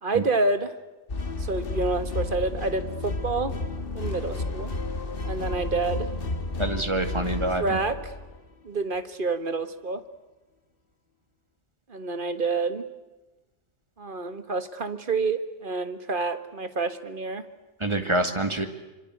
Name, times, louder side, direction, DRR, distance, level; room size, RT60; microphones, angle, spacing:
voice 1, 0.0-0.7 1.4-3.5 3.9-4.7 5.2-6.1 7.6-8.1 8.6-10.0 11.9-12.8 14.0-17.4, right 3 dB, 50° right, 10 dB, 1.8 m, -28 dB
sound 1, 1.1-8.5, left 2 dB, 55° left, 1.8 m, -32 dB
voice 2, 6.6-7.8 17.8-18.7, right 2 dB, 25° right, 7 dB, 2.3 m, -26 dB
25.5 x 25.5 x 8.0 m, 1.1 s
omnidirectional pair, 1.2 m